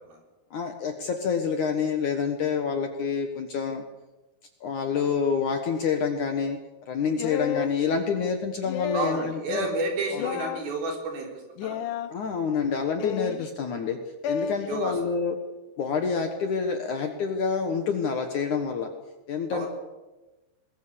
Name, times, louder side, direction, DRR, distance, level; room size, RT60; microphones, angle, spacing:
voice 1, 0.5-3.8 4.6-6.6 6.9-9.7 10.1-10.3 12.1-14.0 14.3-15.4 15.8-18.9 19.3-19.7, left 6 dB, 60° left, 5 dB, 2.3 m, -27 dB
sound 1, 7.2-7.8 8.6-9.3 10.2-10.6 11.6-12.1 13.0-13.5 14.2-14.6, left 8 dB, 80° left, 1.8 m, -31 dB
voice 2, 8.9-11.8 14.7-15.0 19.5-19.7, right 2 dB, 60° right, 1 dB, 5.8 m, -31 dB
21.5 x 21.0 x 6.9 m, 1.1 s
omnidirectional pair, 4.9 m